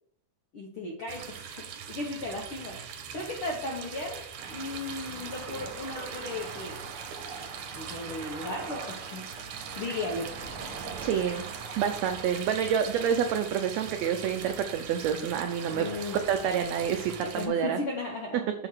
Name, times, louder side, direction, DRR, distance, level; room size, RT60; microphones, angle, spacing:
voice 1, 0.5-2.8 3.1-6.8 7.7-9.3 9.8-10.3 15.7-16.2 17.2-18.4, left 2 dB, 75° left, -1 dB, 1.2 m, -36 dB
sound 1, 1.1-17.5, right 7 dB, 70° right, 2.0 m, -41 dB
sound 2, 4.4-17.3, right 4 dB, 50° right, 2.0 m, -44 dB
voice 2, 11.0-11.5 11.8-15.9 16.3-17.8, right 8 dB, 90° right, 6 dB, 1.5 m, -28 dB
7.1 x 3.9 x 6.2 m, 0.69 s
omnidirectional pair, 3.7 m